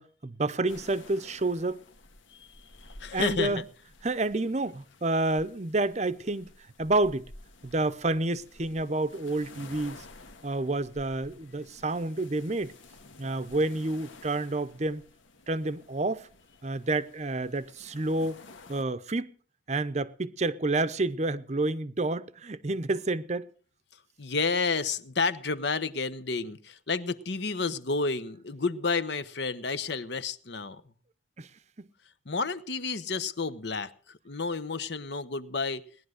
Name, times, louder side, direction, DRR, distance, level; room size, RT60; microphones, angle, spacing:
voice 1, 0.0-1.8 3.1-3.6 4.0-6.5 6.8-7.3 7.6-10.0 10.4-12.7 13.2-15.0 15.5-16.3 16.6-18.4 18.7-19.3 19.7-23.5 31.4-31.5 31.8-31.9, right 2 dB, 35° right, 0.7 m, -29 dB
sound 1, 0.7-18.8, left 2 dB, 90° left, 1.6 m, -52 dB
voice 2, 3.0-3.6 24.2-30.8 32.3-35.8, left 4 dB, 65° left, 1.0 m, -30 dB
18.5 x 11.0 x 6.5 m
head